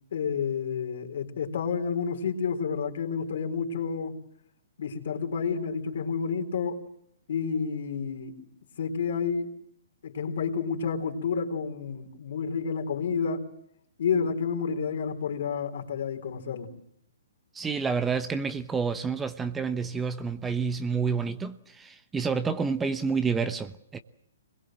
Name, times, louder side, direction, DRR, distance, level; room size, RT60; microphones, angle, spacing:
voice 1, 0.1-4.2 4.8-6.8 7.3-9.5 10.0-13.5 14.0-16.7, left 6 dB, 65° left, 4.0 m, -30 dB
voice 2, 17.5-24.0, right 5 dB, 10° right, 1.0 m, -29 dB
24.5 x 21.5 x 7.6 m
hypercardioid pair, 130°, 0 cm